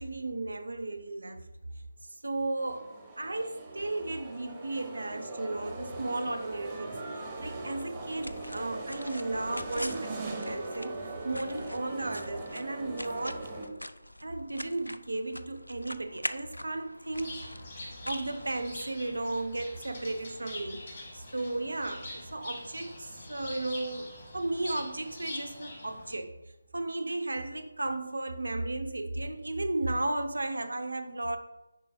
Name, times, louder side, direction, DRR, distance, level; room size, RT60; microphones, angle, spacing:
voice 1, 0.0-1.5 2.0-2.9 3.2-11.0 11.2-13.4 14.2-17.5 17.8-26.4 26.7-31.4, right 2 dB, 70° right, 8 dB, 0.7 m, -35 dB
sound 1, 2.6-13.7, right 2 dB, 20° right, 1.1 m, -40 dB
sound 2, 7.8-19.1, left 1 dB, 85° left, 0.4 m, -44 dB
Bird, 17.1-26.1, left 2 dB, 35° left, 1.9 m, -44 dB
9.8 x 5.4 x 2.3 m, 0.97 s
figure-of-eight pair, 155°, 0 cm